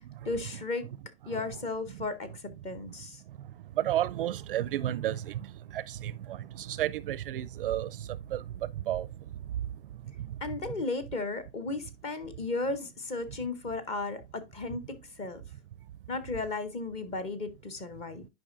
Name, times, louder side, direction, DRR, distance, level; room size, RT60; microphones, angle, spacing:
voice 1, 0.2-0.9 1.3-3.2 10.4-15.4 16.1-18.3, left 3 dB, 20° left, 0.7 m, -35 dB
voice 2, 3.3-10.8, right 12 dB, 55° right, 0.4 m, -34 dB
10.5 x 5.1 x 2.5 m
hypercardioid pair, 150°, 35 cm